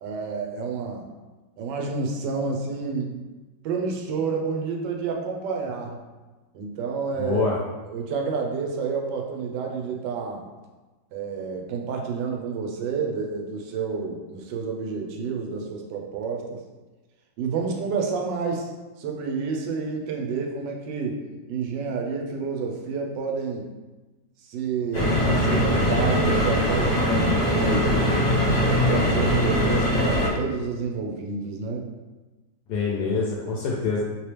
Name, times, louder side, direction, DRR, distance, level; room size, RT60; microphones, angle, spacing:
voice 1, 0.0-1.0 1.6-3.2 3.6-6.0 6.5-7.4 7.8-10.5 11.1-16.6 17.4-18.7 19.0-23.7 24.4-28.1 28.6-31.9, right 5 dB, 85° right, 1 dB, 1.3 m, -29 dB
voice 2, 7.2-7.5 32.7-34.0, left 5 dB, 75° left, -3 dB, 1.1 m, -25 dB
sound 1, 24.9-30.3, left 1 dB, 50° left, 1.3 m, -21 dB
3.1 x 3.0 x 3.2 m, 1.2 s
omnidirectional pair, 1.8 m